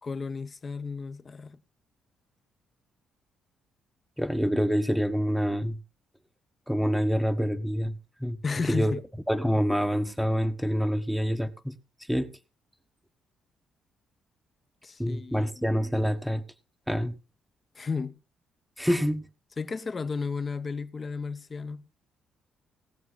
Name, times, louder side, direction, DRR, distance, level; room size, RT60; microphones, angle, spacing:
voice 1, 0.0-1.6 8.4-9.0 14.8-15.8 17.7-18.2 19.6-21.9, left 4 dB, 35° left, 1.1 m, -33 dB
voice 2, 4.2-5.8 6.7-7.9 8.2-8.4 8.7-8.9 9.3-11.8 12.1-12.3 15.0-16.4 16.9-17.2 18.8-19.3, equal, ahead, 1.2 m, -26 dB
19.5 x 7.0 x 3.9 m
cardioid pair, 90°, 0 cm